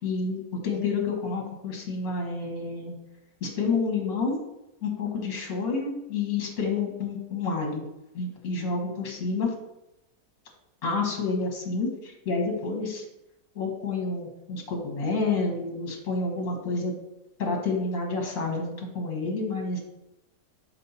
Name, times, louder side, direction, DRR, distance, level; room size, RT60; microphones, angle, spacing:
voice 1, 0.0-3.0 3.4-4.4 4.8-7.8 8.1-9.5 10.8-13.0 13.6-16.9 17.4-19.8, left 4 dB, 55° left, 0 dB, 2.0 m, -29 dB
6.4 x 5.5 x 4.2 m, 0.89 s
omnidirectional pair, 1.7 m